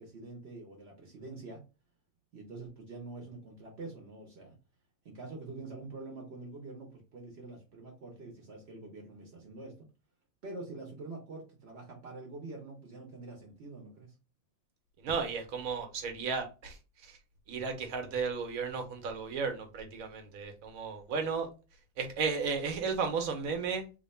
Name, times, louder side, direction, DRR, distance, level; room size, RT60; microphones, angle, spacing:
voice 1, 0.0-1.6 2.3-4.5 5.0-9.7 10.4-14.1, right 3 dB, 55° right, 0 dB, 1.0 m, -45 dB
voice 2, 15.0-17.2 17.5-21.5 22.0-23.9, right 5 dB, 85° right, 5 dB, 1.2 m, -34 dB
2.9 x 2.2 x 4.1 m, 0.31 s
omnidirectional pair, 1.4 m